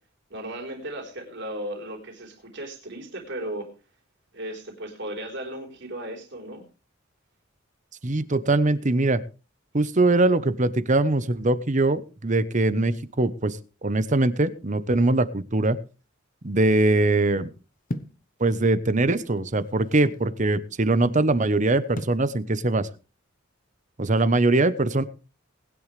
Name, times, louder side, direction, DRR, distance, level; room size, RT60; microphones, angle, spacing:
voice 1, 0.3-3.7 4.3-6.6, right 1 dB, 60° right, 2 dB, 4.0 m, -36 dB
voice 2, 8.0-9.2 9.7-15.8 16.4-17.5 18.4-22.9 24.0-25.0, right 2 dB, 40° right, 15 dB, 1.0 m, -22 dB
sound 1, 17.9-18.2 19.1-20.3 22.0-22.2, left 1 dB, 40° left, 1.0 m, -35 dB
20.5 x 10.5 x 3.3 m, 0.33 s
head